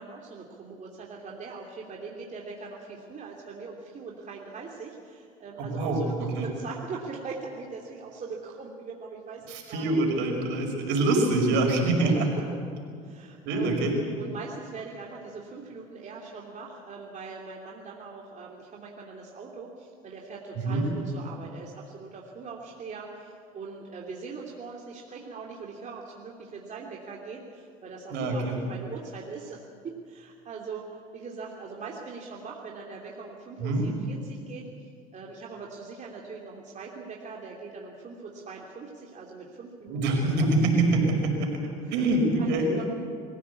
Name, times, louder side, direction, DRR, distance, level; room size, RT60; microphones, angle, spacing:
voice 1, 0.0-10.0 13.0-13.8 14.2-40.5 41.8-42.1 42.4-42.5 42.8-42.9, right 4 dB, 40° right, -2 dB, 3.0 m, -41 dB
voice 2, 5.6-6.5 9.5-12.3 13.5-14.0 20.6-20.9 28.1-28.6 33.6-33.9 39.9-41.3 41.9-42.8, right 2 dB, 70° right, 2 dB, 5.6 m, -25 dB
23.5 x 15.5 x 8.5 m, 2.3 s
supercardioid pair, 85°, 19 cm